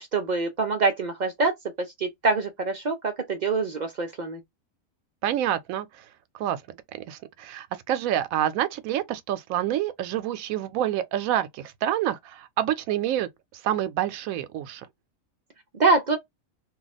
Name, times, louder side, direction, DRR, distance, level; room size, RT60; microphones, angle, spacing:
voice 1, 0.0-1.5 1.8-4.4 15.8-16.2, right 3 dB, 60° right, 0.4 m, -25 dB
voice 2, 5.2-6.0 6.3-6.6 7.1-14.9, right 11 dB, 90° right, 1.0 m, -28 dB
2.4 x 2.2 x 3.9 m
omnidirectional pair, 1.4 m